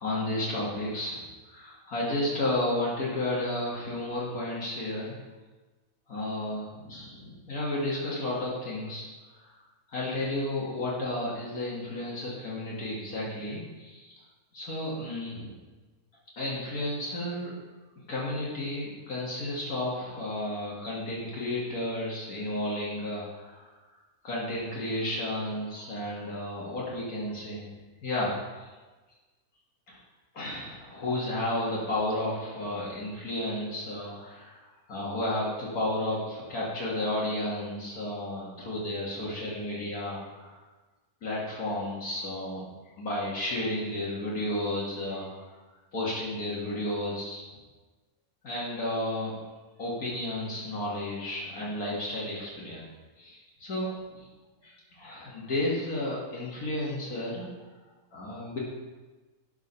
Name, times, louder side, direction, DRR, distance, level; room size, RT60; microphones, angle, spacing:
voice 1, 0.0-5.2 6.1-9.1 9.3-9.5 9.9-14.2 14.5-15.5 16.4-17.5 18.1-23.7 24.2-27.7 28.0-28.7 29.9-30.0 30.3-40.6 41.2-42.7 43.0-45.5 45.9-47.5 48.4-49.4 49.8-52.8 53.2-54.3 54.6-57.5 58.1-58.6, left 1 dB, 70° left, -6 dB, 2.3 m, -32 dB
12.5 x 4.7 x 5.6 m, 1.3 s
omnidirectional pair, 1.6 m